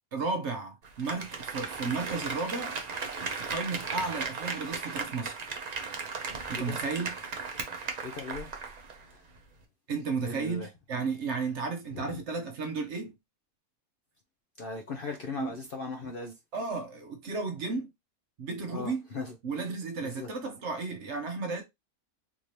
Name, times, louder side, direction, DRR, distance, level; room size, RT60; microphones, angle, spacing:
voice 1, 0.1-2.8 3.4-5.4 6.5-7.1 9.9-13.2 15.4-15.5 16.5-17.9 18.4-19.0 19.4-21.6, right 4 dB, 60° right, 0.9 m, -33 dB
Applause, 0.8-9.0 9.3-9.4, right 4 dB, 45° right, 0.6 m, -36 dB
voice 2, 8.0-8.5 9.0-9.2 10.2-10.7 11.9-12.2 14.6-16.3 18.7-19.7 20.0-20.3, left 3 dB, 55° left, 0.6 m, -38 dB
3.6 x 2.7 x 3.1 m
omnidirectional pair, 1.5 m